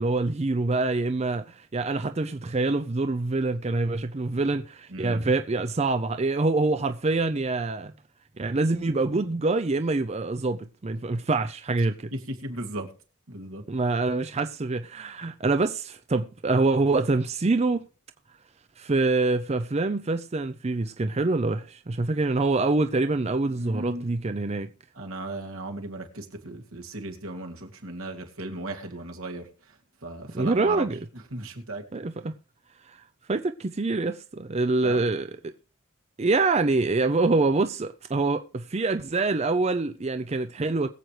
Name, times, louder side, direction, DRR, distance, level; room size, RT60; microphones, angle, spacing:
voice 1, 0.0-7.9 8.4-12.1 13.7-17.8 18.8-24.7 30.3-31.1 31.9-32.3 32.9-35.5 36.2-40.9, right 3 dB, 30° right, 0.5 m, -25 dB
voice 2, 4.9-5.2 12.1-12.9 13.3-13.6 23.5-24.1 25.0-29.4 30.0-30.8 31.3-31.8 34.8-35.0, right 1 dB, 80° right, 2.5 m, -36 dB
21.5 x 7.7 x 3.2 m
head